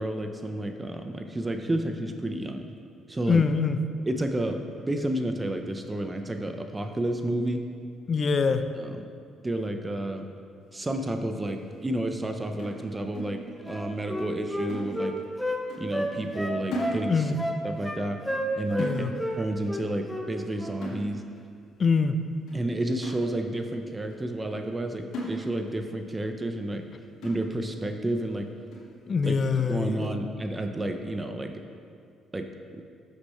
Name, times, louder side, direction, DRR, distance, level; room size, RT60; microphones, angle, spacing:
voice 1, 0.0-2.7 3.1-3.4 4.1-4.6 4.9-7.6 8.8-9.1 9.4-10.3 10.7-13.4 13.7-15.1 15.8-17.3 17.6-18.2 18.6-19.1 19.4-21.2 22.5-26.8 27.2-28.5 29.2-31.6 32.3-32.5 32.7-32.8, right 1 dB, 25° right, 6 dB, 0.8 m, -31 dB
voice 2, 3.3-3.8 8.1-8.6 17.1-17.4 18.8-19.1 21.8-22.1 29.1-30.1, left 5 dB, 45° left, 9 dB, 0.6 m, -24 dB
sound 1, 12.6-13.9 14.2-14.4 14.7-15.4 15.7-15.9 16.2-17.5 17.8-18.0 18.3-18.5 18.8-19.5 19.8-20.0 20.3-20.5 20.8-21.5 21.9-22.0 22.5-22.6 23.0-23.7 24.1-24.2 24.6-24.8 25.1-25.9 26.2-26.3 26.7-26.8 27.2-27.8 28.3-28.4 28.7-28.9, equal, 70° left, 2.0 m, -38 dB
Wind instrument woodwind instrument, 13.6-15.6 15.9-17.0 17.4-18.0 18.2-18.9 19.2-19.4 19.7-20.3 20.6-20.8, equal, 5° left, 1.2 m, -31 dB
13.0 x 6.6 x 3.2 m, 2.3 s
hypercardioid pair, 50°, 0 cm